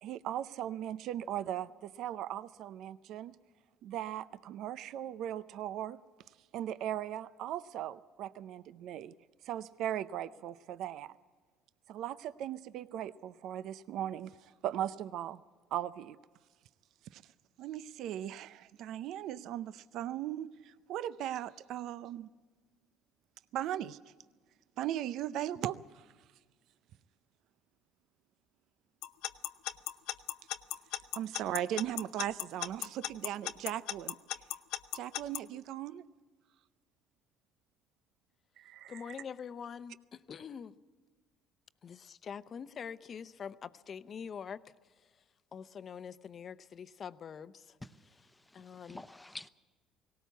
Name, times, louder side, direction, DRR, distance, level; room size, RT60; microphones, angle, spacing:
voice 1, 0.0-3.4 3.8-6.0 6.5-9.1 9.4-11.1 11.9-15.4 15.7-16.2 17.1-17.2 17.6-22.3 23.5-24.0 24.8-26.1 31.2-34.2 34.9-36.0 38.6-39.1, right 11 dB, 65° right, 15 dB, 0.5 m, -38 dB
Alarm / Clock, 29.0-35.4, left 14 dB, 80° left, 0.7 m, -36 dB
voice 2, 38.9-40.7 41.8-44.6 45.0-45.1 45.5-47.8 48.5-49.0, left 7 dB, 45° left, 14 dB, 0.8 m, -45 dB
voice 3, 47.8-49.5, left 1 dB, 10° left, 13 dB, 0.9 m, -49 dB
18.5 x 18.0 x 8.2 m, 1.4 s
supercardioid pair, 90°, 0 cm